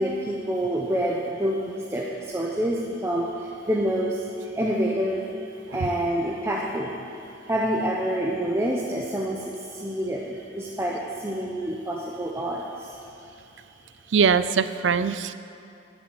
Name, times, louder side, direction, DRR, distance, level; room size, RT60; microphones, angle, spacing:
voice 1, 0.0-3.4 3.7-4.2 4.5-5.3 5.7-6.9 7.5-12.9, right 1 dB, 15° right, -3 dB, 0.8 m, -27 dB
voice 2, 14.1-15.3, right 6 dB, 85° right, 13 dB, 0.5 m, -22 dB
12.0 x 7.0 x 8.0 m, 2.6 s
head